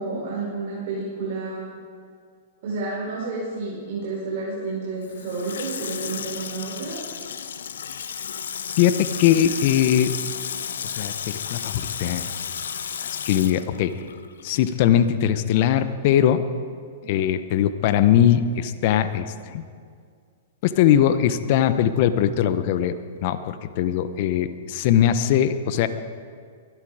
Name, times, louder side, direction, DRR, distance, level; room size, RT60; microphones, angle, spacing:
voice 1, 0.0-1.7 2.6-7.0, right 3 dB, 60° right, -6 dB, 5.2 m, -30 dB
Water tap faucet / Sink (filling or washing), 5.0-14.7 15.0-15.1, left 8 dB, 80° left, 0.8 m, -33 dB
voice 2, 8.8-10.1 10.8-12.3 13.1-13.9 14.4-16.4 17.0-19.6 20.6-23.0 23.2-25.9, left 10 dB, 55° left, 11 dB, 1.0 m, -21 dB
22.5 x 12.5 x 5.0 m, 2.1 s
hypercardioid pair, 120°, 0 cm